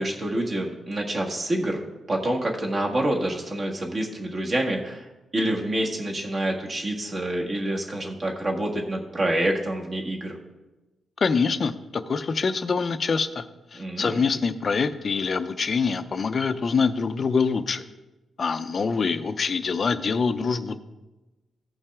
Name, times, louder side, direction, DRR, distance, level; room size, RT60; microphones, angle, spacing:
voice 1, 0.0-5.1 5.3-10.4 13.7-14.2, right 1 dB, 35° right, 0 dB, 1.6 m, -27 dB
voice 2, 11.2-13.5 13.7-17.8 18.4-20.8, left 5 dB, 40° left, 11 dB, 0.6 m, -25 dB
15.5 x 5.6 x 3.6 m, 1.1 s
wide cardioid pair, 140°, 0 cm